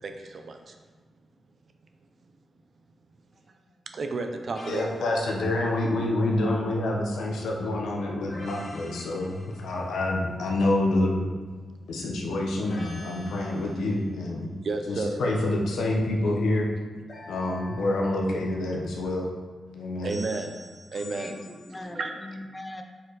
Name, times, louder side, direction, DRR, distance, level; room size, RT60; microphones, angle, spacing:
voice 1, 0.0-0.8 3.9-4.9 14.6-15.2 20.0-20.5 20.9-21.4 21.9-22.1, right 3 dB, 45° right, 5 dB, 0.6 m, -31 dB
sound 1, 4.5-5.1 8.3-10.0 12.7-14.1 17.1-18.6 20.1-21.8, left 1 dB, 45° left, 1.7 m, -46 dB
voice 2, 4.6-11.3 11.9-14.5 14.9-16.7 17.3-19.3 19.7-20.1, left 2 dB, 85° left, 0 dB, 1.0 m, -27 dB
voice 3, 6.3-6.9 7.2-7.3 19.2-19.3 21.1-22.8, left 1 dB, 15° left, 5 dB, 0.5 m, -41 dB
5.0 x 4.2 x 4.7 m, 1.5 s
wide cardioid pair, 140°, 0 cm